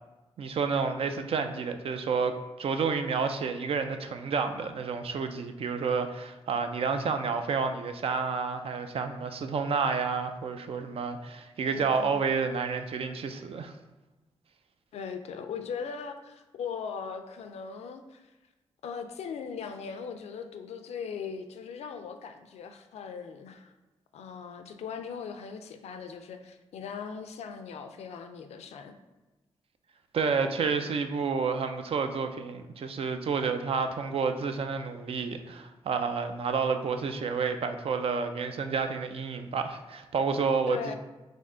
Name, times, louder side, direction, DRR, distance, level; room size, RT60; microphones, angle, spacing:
voice 1, 0.4-13.7 30.1-40.9, right 5 dB, 60° right, 7 dB, 0.4 m, -30 dB
voice 2, 11.6-12.2 14.9-18.3 18.8-23.7 24.1-28.9 40.7-40.9, left 6 dB, 75° left, 7 dB, 0.4 m, -39 dB
3.4 x 2.6 x 3.7 m, 1.1 s
cardioid pair, 55°, 11 cm